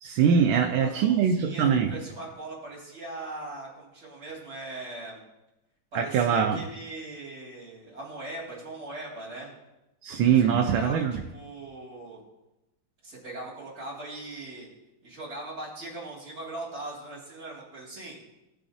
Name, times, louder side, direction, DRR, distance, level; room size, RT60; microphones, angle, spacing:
voice 1, 0.0-1.9 5.9-6.6 10.0-11.2, right 7 dB, 80° right, 3 dB, 1.5 m, -23 dB
voice 2, 0.6-1.6 1.9-5.2 5.9-9.5 10.5-12.2 13.0-14.7 15.0-18.2, right 2 dB, 50° right, -8 dB, 3.5 m, -40 dB
17.5 x 6.7 x 2.7 m, 0.95 s
omnidirectional pair, 2.2 m